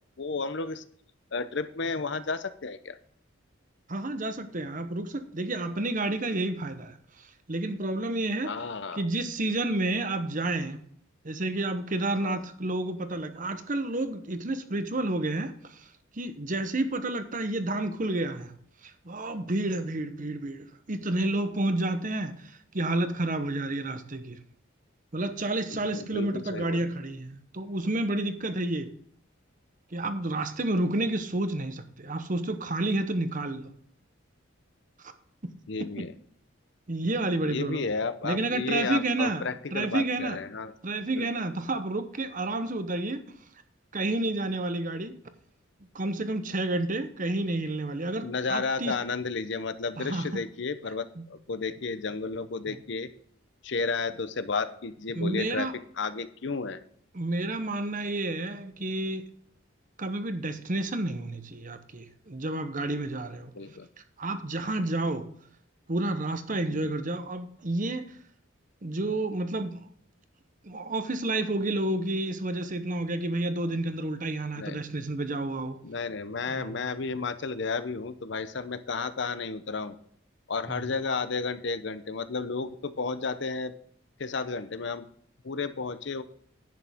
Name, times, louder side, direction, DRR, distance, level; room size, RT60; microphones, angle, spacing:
voice 1, 0.2-0.8 1.3-3.0 8.4-9.0 12.2-12.4 25.7-26.9 35.7-36.1 37.4-40.7 41.2-41.3 48.2-53.1 53.6-55.7 56.0-56.8 63.5-63.9 66.7-66.9 74.6-74.8 75.8-80.0 80.5-83.7 84.2-85.0 85.4-86.2, left 4 dB, 60° left, 0.7 m, -32 dB
voice 2, 3.9-8.5 8.9-10.8 11.2-15.9 16.1-18.5 18.8-24.4 25.1-28.9 29.9-33.7 35.0-35.1 35.4-35.5 36.9-37.9 38.2-39.4 39.7-40.4 40.8-43.2 43.9-45.1 45.9-48.9 50.0-50.4 51.2-51.3 52.7-52.8 55.1-55.7 57.1-59.2 60.0-63.5 64.2-65.3 65.9-68.2 68.8-69.9 70.6-75.8 76.5-76.8 80.7-80.8, right 2 dB, 40° right, 0.9 m, -30 dB
10.5 x 8.6 x 3.6 m
head